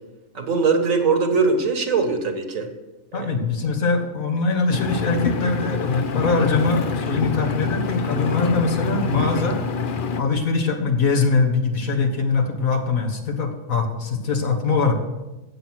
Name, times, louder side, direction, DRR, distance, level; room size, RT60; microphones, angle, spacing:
voice 1, 0.4-2.7 3.1-3.3, right 4 dB, 65° right, 7 dB, 1.8 m, -21 dB
voice 2, 3.1-9.6 10.2-14.9, left 4 dB, 70° left, 4 dB, 1.9 m, -22 dB
Engine, 4.7-10.2, left 5 dB, 45° left, 0.7 m, -26 dB
15.5 x 7.3 x 6.2 m, 1.1 s
omnidirectional pair, 1.5 m